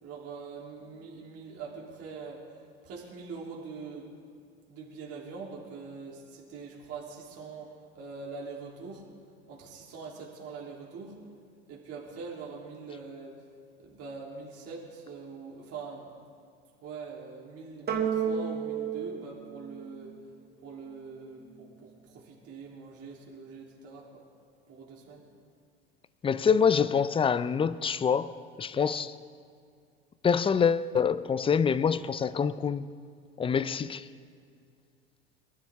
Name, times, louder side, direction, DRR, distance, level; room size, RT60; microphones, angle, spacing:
voice 1, 0.0-4.1 4.7-9.1 9.5-11.2 11.7-13.3 13.8-16.1 16.8-20.1 20.6-24.2 24.7-25.2 28.7-29.0, right 4 dB, 45° right, 3.2 m, -43 dB
sound 1, 17.9-20.5, right 7 dB, 30° right, 1.6 m, -32 dB
voice 2, 26.2-29.2 30.2-32.9 33.4-34.1, left 6 dB, 15° left, 0.5 m, -26 dB
23.0 x 12.0 x 3.6 m
hypercardioid pair, 80°, 32 cm